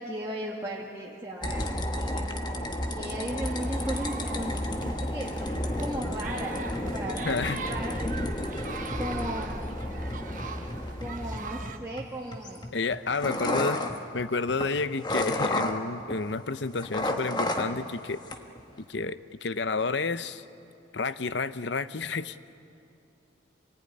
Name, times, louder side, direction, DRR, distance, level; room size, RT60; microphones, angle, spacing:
voice 1, 0.0-1.6 2.0-2.3 2.9-4.6 4.8-8.2 9.0-9.6 11.0-12.7 13.2-13.6, right 1 dB, 15° right, -5 dB, 1.8 m, -36 dB
sound 1, 1.4-16.3 16.6-17.9 18.2-18.7, left 1 dB, 20° left, 1.3 m, -32 dB
sound 2, 3.4-11.8, right 4 dB, 45° right, 1.2 m, -41 dB
voice 2, 7.3-7.6 12.7-13.8 14.1-18.2 18.8-20.4 20.9-22.4, left 4 dB, 70° left, 13 dB, 0.8 m, -30 dB
27.0 x 19.0 x 9.9 m, 2.6 s
head